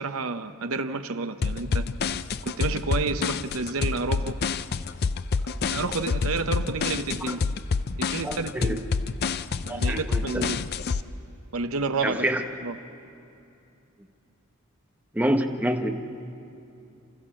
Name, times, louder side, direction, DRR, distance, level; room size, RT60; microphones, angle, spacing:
voice 1, 0.0-1.9 2.4-4.4 5.4-7.4 8.0-8.8 9.6-10.6 11.5-12.3 12.6-12.8, right 3 dB, 70° right, 9 dB, 0.9 m, -30 dB
sound 1, 1.4-11.0, left 5 dB, 45° left, 0.5 m, -27 dB
voice 2, 8.2-8.8 9.7-10.5 12.0-12.4 15.1-16.0, right 1 dB, 5° right, 4 dB, 1.0 m, -27 dB
29.0 x 14.0 x 7.6 m, 2.7 s
head